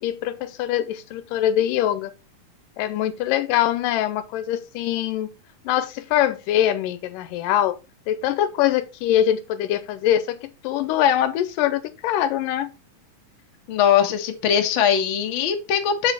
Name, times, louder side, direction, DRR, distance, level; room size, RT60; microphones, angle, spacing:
voice 1, 0.0-2.1 2.8-5.3 5.7-7.8 8.1-12.7, left 11 dB, 85° left, 2.2 m, -23 dB
voice 2, 13.7-16.1, left 8 dB, 65° left, 1.2 m, -20 dB
7.1 x 5.6 x 4.0 m
omnidirectional pair, 3.9 m